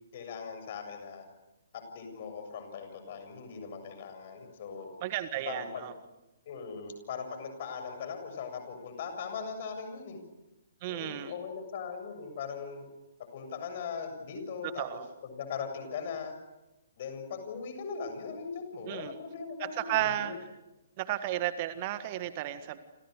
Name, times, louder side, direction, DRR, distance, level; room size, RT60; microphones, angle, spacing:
voice 1, 0.1-1.3 1.7-4.9 5.5-5.9 6.5-10.2 10.9-12.9 13.3-16.3 17.0-20.4, left 6 dB, 45° left, 8 dB, 7.3 m, -40 dB
voice 2, 5.0-5.9 10.8-11.3 14.6-15.1 18.8-19.1 19.6-20.3 21.0-22.8, right 13 dB, 35° right, 11 dB, 1.6 m, -33 dB
29.0 x 28.5 x 6.7 m, 0.99 s
figure-of-eight pair, 125°, 0 cm